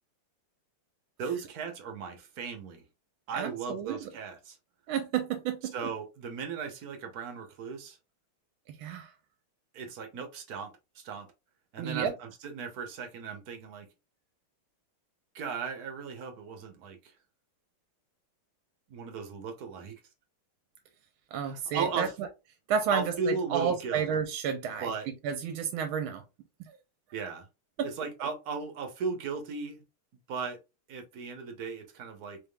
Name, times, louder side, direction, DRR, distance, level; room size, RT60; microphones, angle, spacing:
voice 1, 1.2-2.8 3.3-4.6 5.7-8.0 9.7-11.3 11.7-13.9 15.3-17.1 18.9-20.0 21.4-22.1 22.9-24.1 24.8-25.1 27.1-27.5 27.8-29.8 30.3-30.6 30.9-32.4, right 5 dB, 55° right, 1.2 m, -36 dB
voice 2, 3.3-4.1 4.9-5.7 8.7-9.1 11.8-12.1 21.3-22.1 22.7-24.9 25.2-26.2 26.6-26.8 27.8-27.9 28.2-28.3, right 7 dB, 80° right, 1.4 m, -31 dB
4.4 x 3.5 x 2.2 m
omnidirectional pair, 2.3 m